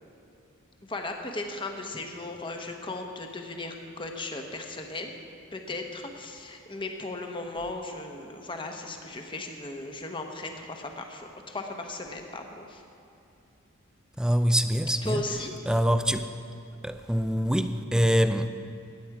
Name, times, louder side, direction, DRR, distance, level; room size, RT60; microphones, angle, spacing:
voice 1, 0.9-5.1 5.5-12.8 15.0-15.5, left 2 dB, 25° left, 1.1 m, -36 dB
voice 2, 14.2-15.2 15.7-16.3 16.8-18.5, equal, 5° right, 0.4 m, -24 dB
16.0 x 10.5 x 4.8 m
head